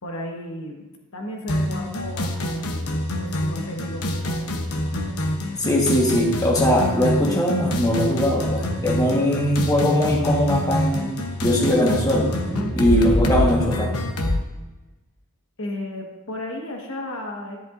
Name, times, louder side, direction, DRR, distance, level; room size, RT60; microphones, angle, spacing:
voice 1, 0.0-4.4 4.9-5.1 12.9-13.2 15.6-17.6, left 1 dB, 65° left, 1 dB, 1.4 m, -34 dB
sound 1, 1.5-14.4, left 1 dB, 80° left, 1.0 m, -26 dB
sound 2, 3.0-12.7, equal, 15° right, 2.1 m, -43 dB
voice 2, 5.6-12.3 12.7-13.9, equal, 15° left, -2 dB, 1.3 m, -20 dB
11.0 x 10.5 x 2.5 m, 1.2 s
head